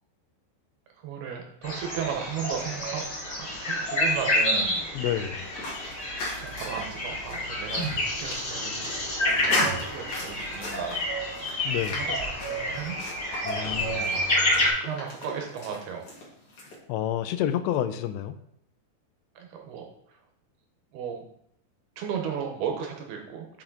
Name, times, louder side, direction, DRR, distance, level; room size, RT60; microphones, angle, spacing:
voice 1, 1.0-4.9 6.4-11.1 11.9-13.0 13.6-14.1 14.8-16.1 19.4-20.2 20.9-21.2 22.0-23.6, right 7 dB, 75° right, 2 dB, 2.7 m, -35 dB
sound 1, 1.6-14.7, left 1 dB, 25° left, 2.3 m, -29 dB
voice 2, 4.9-5.5 11.6-12.0 13.4-14.2 16.9-18.4, left 11 dB, 85° left, 10 dB, 2.7 m, -29 dB
sound 2, 5.1-16.8, left 2 dB, 45° left, 2.1 m, -38 dB
sound 3, 6.9-8.5 9.3-10.3 11.8-11.9 12.1-13.1 13.6-14.2, right 3 dB, 25° right, 2.1 m, -39 dB
7.1 x 5.9 x 3.8 m, 0.71 s
omnidirectional pair, 4.9 m